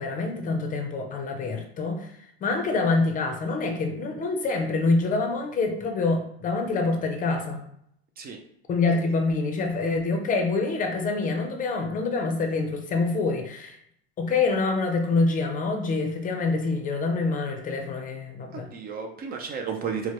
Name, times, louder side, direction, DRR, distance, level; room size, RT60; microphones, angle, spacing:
voice 1, 0.0-2.1 2.4-7.6 8.7-13.8 14.2-18.7, left 3 dB, 25° left, 4 dB, 0.6 m, -26 dB
voice 2, 18.5-20.1, right 6 dB, 30° right, 3 dB, 0.4 m, -33 dB
4.5 x 2.1 x 2.9 m, 0.72 s
supercardioid pair, 125°, 31 cm